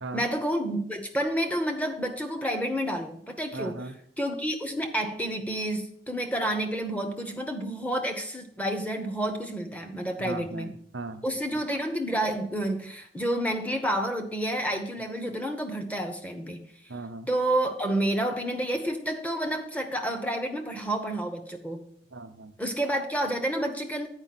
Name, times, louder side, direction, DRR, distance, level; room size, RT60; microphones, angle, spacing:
voice 1, 0.1-3.8 4.2-10.7 11.2-16.6 17.3-21.9 22.6-24.1, right 1 dB, 5° left, 6 dB, 0.8 m, -29 dB
voice 2, 3.5-3.9 10.2-11.2 16.9-17.3 22.1-22.5, right 2 dB, 75° right, 8 dB, 0.8 m, -37 dB
9.0 x 4.9 x 5.9 m, 0.68 s
head